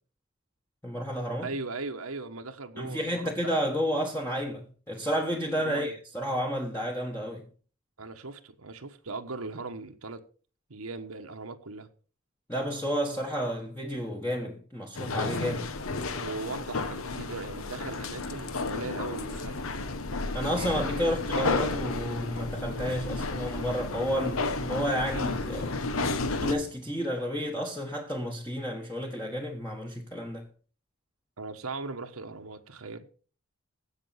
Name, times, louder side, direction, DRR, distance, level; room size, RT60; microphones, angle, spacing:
voice 1, 0.8-1.5 2.8-7.5 12.5-15.7 20.3-25.9 26.3-30.5, equal, 10° left, 1.3 m, -31 dB
voice 2, 1.4-3.5 5.6-5.9 8.0-10.2 10.7-11.9 16.2-19.7 21.0-21.2 31.4-33.1, right 3 dB, 85° right, 1.3 m, -39 dB
sound 1, 14.9-26.5, left 3 dB, 75° left, 1.1 m, -32 dB
16.0 x 6.0 x 5.7 m
head